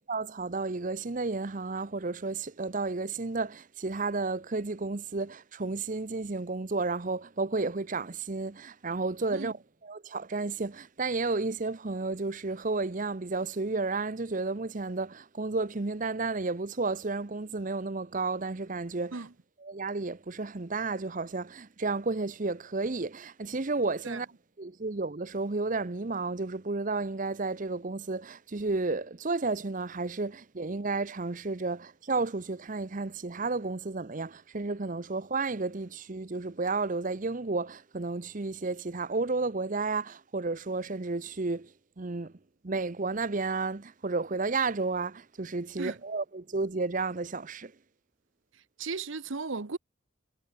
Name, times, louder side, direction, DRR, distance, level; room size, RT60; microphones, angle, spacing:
voice 1, 0.1-9.6 9.8-19.2 19.6-24.3 24.6-41.7 42.0-42.3 42.6-47.7, right 3 dB, 40° right, 0.8 m, -32 dB
voice 2, 48.8-49.8, right 4 dB, 70° right, 1.0 m, -35 dB
head